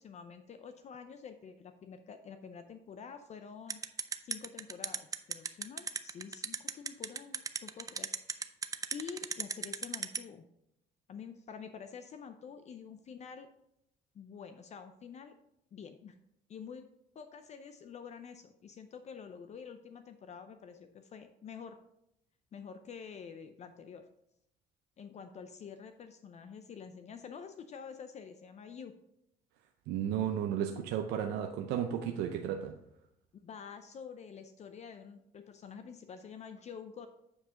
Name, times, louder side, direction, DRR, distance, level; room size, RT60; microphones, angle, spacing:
voice 1, 0.0-3.8 4.2-8.5 8.9-10.4 11.1-13.5 14.1-15.3 15.7-16.2 16.5-16.9 17.1-21.8 22.5-24.0 25.0-28.9 33.4-37.1, left 6 dB, 40° left, 8 dB, 0.5 m, -48 dB
sound 1, 3.7-10.2, right 5 dB, 20° right, 0.4 m, -34 dB
voice 2, 29.9-32.8, right 9 dB, 85° right, 4 dB, 0.6 m, -33 dB
8.6 x 4.9 x 3.7 m, 0.78 s
cardioid pair, 110°, 17 cm